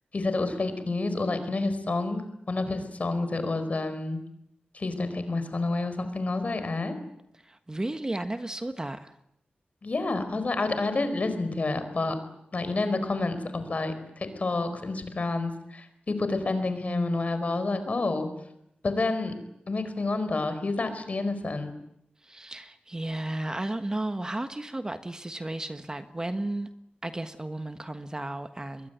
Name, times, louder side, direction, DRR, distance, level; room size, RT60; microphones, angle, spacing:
voice 1, 0.1-4.2 4.7-7.0 9.8-12.2 12.5-18.3 18.8-19.4 19.7-21.7, left 3 dB, 45° left, 10 dB, 4.7 m, -29 dB
voice 2, 7.4-9.1 22.2-26.7 27.0-28.9, right 1 dB, 20° right, 9 dB, 1.4 m, -34 dB
25.5 x 22.0 x 9.4 m, 0.79 s
wide cardioid pair, 120°, 3 cm